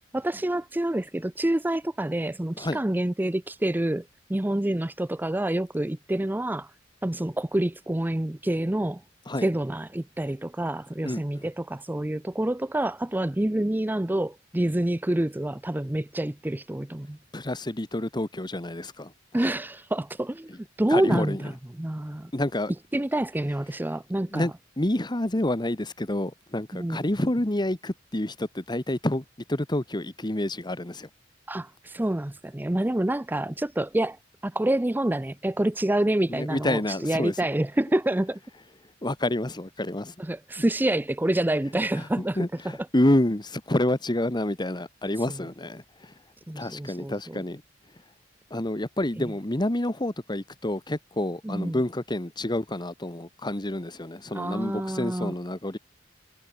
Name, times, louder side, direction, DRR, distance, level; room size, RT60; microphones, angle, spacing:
voice 1, 0.1-4.0 4.3-6.7 7.0-9.0 9.4-17.2 19.3-22.3 22.9-24.5 26.7-27.1 31.5-34.2 34.4-38.4 40.2-42.8 45.3-45.4 46.5-47.4 49.2-49.3 51.4-51.8 54.3-55.3, right 1 dB, 10° right, 0.5 m, -27 dB
voice 2, 17.3-19.1 20.9-21.4 22.3-22.7 24.3-31.1 36.3-37.3 39.0-40.1 42.0-46.1 46.6-47.6 48.5-55.8, left 1 dB, 25° left, 1.5 m, -28 dB
head